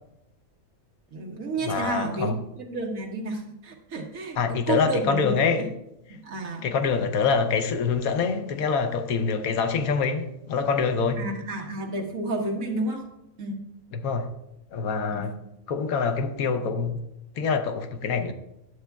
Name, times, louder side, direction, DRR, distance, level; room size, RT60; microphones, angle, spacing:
voice 1, 1.1-5.6 6.1-6.6 11.2-13.0 13.4-13.6 15.1-15.3, right 2 dB, 70° right, 1.6 m, -31 dB
voice 2, 1.6-2.4 4.4-5.7 6.6-11.2 13.9-14.3 14.7-15.3 15.7-17.0 17.4-18.3, left 5 dB, 75° left, 1.2 m, -25 dB
11.0 x 8.1 x 2.3 m
omnidirectional pair, 1.5 m